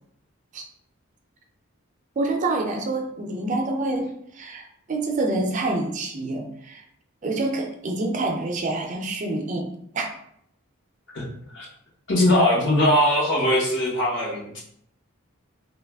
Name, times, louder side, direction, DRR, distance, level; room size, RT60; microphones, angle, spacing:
voice 1, 2.2-6.8 7.2-10.1, right 2 dB, 35° right, 2 dB, 0.4 m, -27 dB
voice 2, 12.1-14.6, left 1 dB, 55° left, -3 dB, 0.8 m, -20 dB
2.8 x 2.3 x 3.4 m, 0.70 s
head